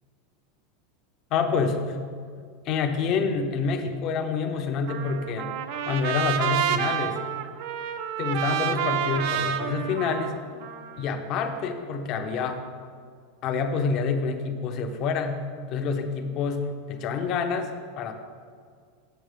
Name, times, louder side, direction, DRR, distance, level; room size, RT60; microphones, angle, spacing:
voice 1, 1.3-2.0 2.6-5.5 5.9-7.2 8.2-10.4 11.0-12.6 13.4-17.7 18.0-18.1, left 5 dB, 40° left, 6 dB, 0.9 m, -27 dB
Trumpet, 4.9-11.1, right 9 dB, 60° right, 0.6 m, -29 dB
8.0 x 7.2 x 5.0 m, 2.1 s
supercardioid pair, 150°, 0 cm